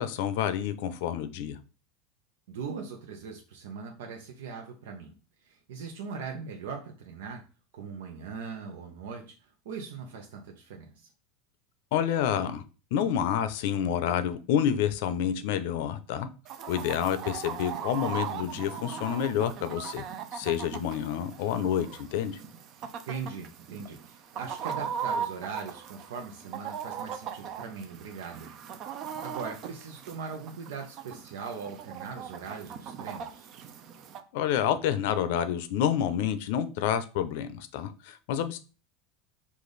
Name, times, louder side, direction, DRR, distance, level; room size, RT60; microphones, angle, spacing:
voice 1, 0.0-1.6 11.9-12.6 12.9-16.3 16.7-20.0 20.3-22.4 34.3-38.6, left 9 dB, 65° left, 12 dB, 0.5 m, -28 dB
voice 2, 2.5-5.1 5.4-7.4 7.7-11.1 23.1-28.5 29.2-33.5, right 5 dB, 85° right, 2 dB, 0.7 m, -40 dB
Chicken rooster, 16.5-34.2, right 7 dB, 40° right, 0.5 m, -39 dB
5.0 x 2.5 x 3.9 m, 0.35 s
supercardioid pair, 155°, 0 cm